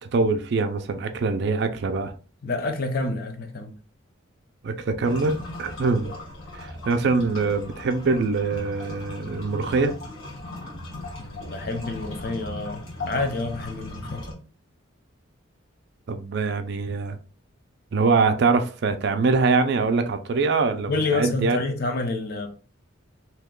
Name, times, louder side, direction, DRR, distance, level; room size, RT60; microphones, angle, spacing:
voice 1, 0.1-2.1 4.6-6.1 6.5-10.0 16.1-17.2 17.9-21.6, right 4 dB, 55° right, 0.4 m, -23 dB
voice 2, 2.4-3.7 11.2-14.2 20.9-22.5, left 3 dB, 50° left, 0.6 m, -28 dB
sound 1, 5.0-14.3, left 2 dB, 75° left, 1.2 m, -37 dB
2.8 x 2.3 x 3.6 m
head